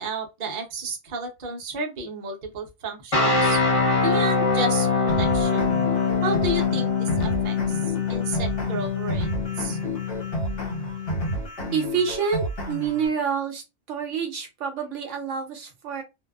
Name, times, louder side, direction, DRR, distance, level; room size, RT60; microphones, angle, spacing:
voice 1, 0.0-3.6 4.0-5.8 6.2-9.3 9.6-9.8, right 2 dB, 50° right, 0.8 m, -32 dB
sound 1, 3.1-11.4, left 4 dB, 30° left, 0.8 m, -24 dB
sound 2, 5.1-13.1, equal, 65° left, 1.5 m, -31 dB
voice 2, 11.7-13.6 13.9-16.0, right 6 dB, 70° right, 1.0 m, -27 dB
2.7 x 2.3 x 2.2 m
omnidirectional pair, 1.3 m